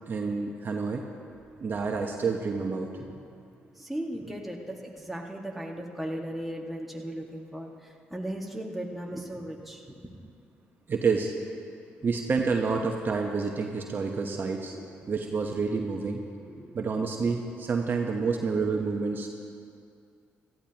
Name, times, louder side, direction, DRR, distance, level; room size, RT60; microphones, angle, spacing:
voice 1, 0.1-1.0 1.6-2.9 10.9-11.3 12.0-14.7 15.1-16.2 16.7-19.3, right 4 dB, 45° right, 2 dB, 1.0 m, -28 dB
voice 2, 3.7-10.1 14.7-15.1 16.4-16.8, right 1 dB, 5° right, -1 dB, 1.9 m, -37 dB
17.0 x 13.5 x 3.0 m, 2.4 s
supercardioid pair, 65°, 5 cm